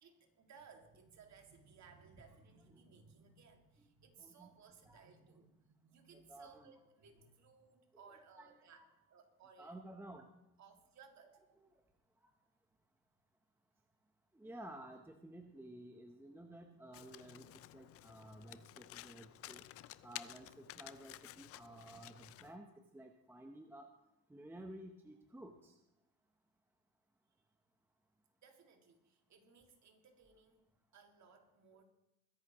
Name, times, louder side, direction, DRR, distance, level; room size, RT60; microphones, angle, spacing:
voice 1, 0.0-9.8 10.6-11.6 27.3-27.4 28.4-30.6 30.9-31.8, right 5 dB, 35° right, 4 dB, 2.2 m, -62 dB
voice 2, 4.2-4.5 4.9-5.0 6.1-6.8 8.1-8.9 9.6-10.3 11.6-11.7 14.3-17.5 17.7-19.6 20.0-23.9 24.3-25.7, right 1 dB, 5° right, 4 dB, 0.8 m, -53 dB
Domestic sounds home sounds, 16.9-22.6, left 14 dB, 35° left, 0.4 m, -53 dB
22.0 x 10.5 x 3.0 m, 0.88 s
supercardioid pair, 115°, 47 cm